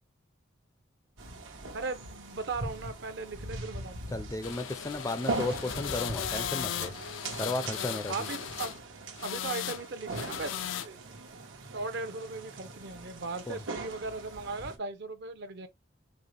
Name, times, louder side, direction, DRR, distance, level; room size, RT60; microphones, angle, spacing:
sound 1, 1.2-14.8, right 2 dB, 90° right, 1.1 m, -41 dB
voice 1, 1.7-4.2 8.1-8.7 9.2-10.6 10.8-11.0 11.7-15.7, right 3 dB, 60° right, 0.7 m, -38 dB
voice 2, 4.1-6.9 7.4-8.1 13.5-13.6, left 2 dB, 15° left, 0.4 m, -34 dB
sound 2, 4.4-8.8 9.2-9.9 10.1-10.9, left 10 dB, 80° left, 0.4 m, -37 dB
5.3 x 2.0 x 3.2 m
head